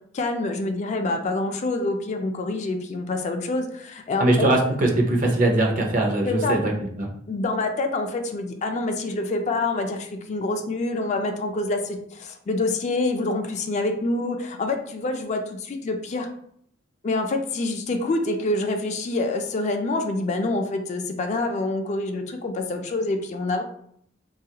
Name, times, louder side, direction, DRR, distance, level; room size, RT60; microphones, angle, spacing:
voice 1, 0.1-4.5 6.3-6.6 7.3-16.3 17.0-23.6, left 2 dB, 40° left, 5 dB, 0.3 m, -26 dB
voice 2, 4.2-7.1, right 1 dB, 50° right, 1 dB, 0.6 m, -21 dB
3.2 x 2.3 x 2.8 m, 0.67 s
head